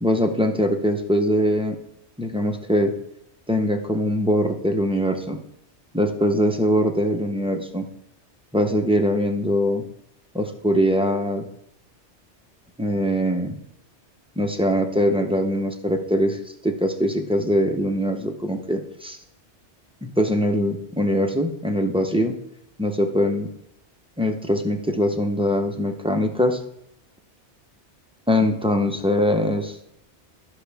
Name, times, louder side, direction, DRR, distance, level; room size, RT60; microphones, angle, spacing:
voice 1, 0.0-1.8 2.2-2.9 3.5-5.4 5.9-7.9 8.5-9.8 10.3-11.5 12.8-13.6 14.4-19.2 20.0-22.4 22.8-23.5 24.2-26.6 28.3-29.8, equal, 5° right, 4 dB, 0.6 m, -22 dB
13.5 x 5.7 x 3.5 m, 0.77 s
omnidirectional pair, 1.2 m